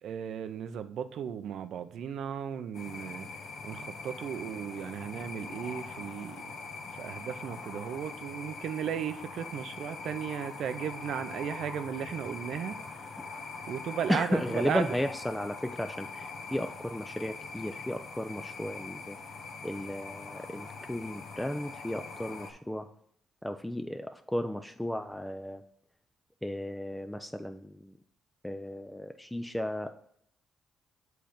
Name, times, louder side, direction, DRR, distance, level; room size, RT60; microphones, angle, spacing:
voice 1, 0.0-3.3 3.6-6.5 6.9-13.1 13.7-14.9, right 8 dB, 70° right, 11 dB, 0.6 m, -36 dB
sound 1, 2.7-22.5, left 4 dB, 65° left, 1.1 m, -43 dB
voice 2, 14.1-19.2 19.6-22.9 23.4-25.6 26.4-27.9 28.4-29.9, left 1 dB, 5° left, 8 dB, 0.4 m, -34 dB
7.8 x 3.4 x 5.0 m, 0.70 s
cardioid pair, 90°, 0 cm